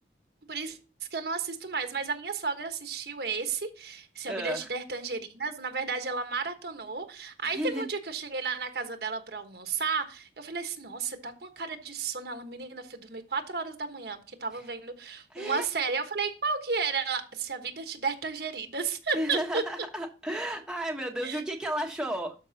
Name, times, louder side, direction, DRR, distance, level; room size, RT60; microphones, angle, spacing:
voice 1, 1.1-19.6 21.2-21.4, right 5 dB, 65° right, 1.2 m, -33 dB
voice 2, 4.3-4.7 7.4-7.9 15.3-15.7 19.1-22.3, equal, 5° right, 1.1 m, -33 dB
12.5 x 5.3 x 2.8 m
head